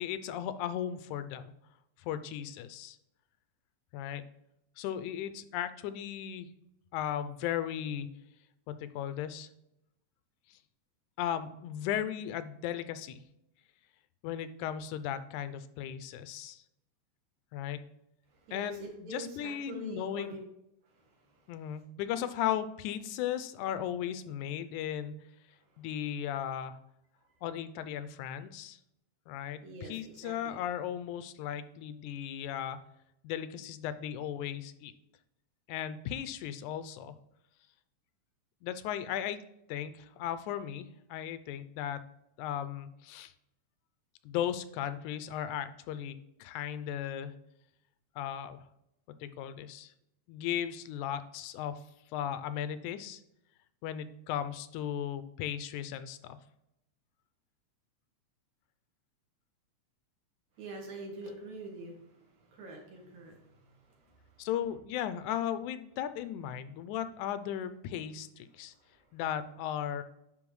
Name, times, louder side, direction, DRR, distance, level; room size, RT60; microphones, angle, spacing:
voice 1, 0.0-1.5 2.0-3.0 3.9-4.2 4.8-6.5 6.9-8.1 8.7-9.5 11.2-13.2 14.2-16.6 17.5-17.8 18.5-20.3 21.5-25.2 25.8-26.8 27.4-28.8 29.3-32.8 33.2-34.9 35.7-37.1 38.6-39.4 39.7-42.0 42.4-43.3 44.3-47.3 48.2-48.6 49.2-49.9 50.3-51.8 52.1-53.2 53.8-56.4 64.4-68.7 69.1-70.0, left 10 dB, 85° left, 12 dB, 2.0 m, -36 dB
voice 2, 18.3-20.4 20.8-21.8 25.6-26.1 29.6-30.6 60.6-64.8 65.1-65.2 66.1-66.3 66.9-67.1 67.4-67.5 68.0-68.2 68.5-69.3, right 2 dB, 70° right, 0 dB, 2.9 m, -47 dB
9.9 x 3.8 x 3.1 m, 0.82 s
omnidirectional pair, 3.4 m